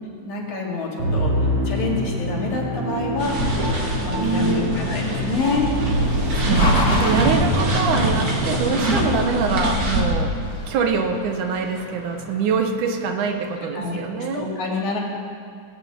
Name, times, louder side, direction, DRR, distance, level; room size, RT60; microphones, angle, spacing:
voice 1, 0.2-3.4 4.0-5.7 13.7-14.0 14.3-15.0, left 4 dB, 70° left, -2 dB, 3.6 m, -27 dB
Musical instrument, 1.0-9.5, equal, 50° right, 3.5 m, -26 dB
sound 1, 3.2-10.0, right 1 dB, 35° right, 1.8 m, -24 dB
sound 2, 4.0-13.3, left 1 dB, 30° left, 3.1 m, -28 dB
voice 2, 4.2-4.8 6.4-10.3 10.7-14.5, right 5 dB, 75° right, 5 dB, 2.5 m, -24 dB
18.0 x 6.9 x 8.7 m, 2.2 s
omnidirectional pair, 3.6 m